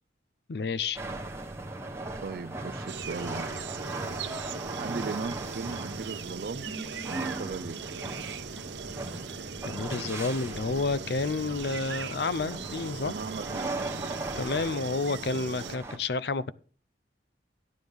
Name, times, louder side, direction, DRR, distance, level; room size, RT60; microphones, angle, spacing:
voice 1, 0.5-1.0 9.6-13.1 14.4-16.5, left 3 dB, 60° left, 0.5 m, -30 dB
sound 1, 1.0-16.0, right 2 dB, 15° right, 1.0 m, -38 dB
voice 2, 2.2-3.5 4.8-6.7 7.1-7.8 13.0-13.7, right 4 dB, 55° right, 0.4 m, -37 dB
sound 2, 2.9-15.8, right 5 dB, 75° right, 0.8 m, -39 dB
12.5 x 9.5 x 3.5 m
head